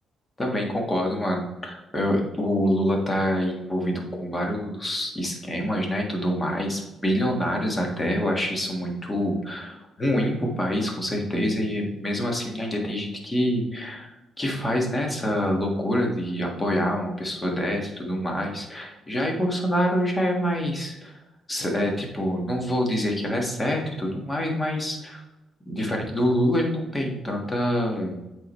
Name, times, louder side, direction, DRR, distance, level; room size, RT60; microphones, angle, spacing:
voice 1, 0.4-21.2 21.5-25.2 25.6-28.2, equal, 20° left, 1 dB, 1.5 m, -26 dB
8.2 x 3.9 x 3.1 m, 0.98 s
cardioid pair, 90°, 0 cm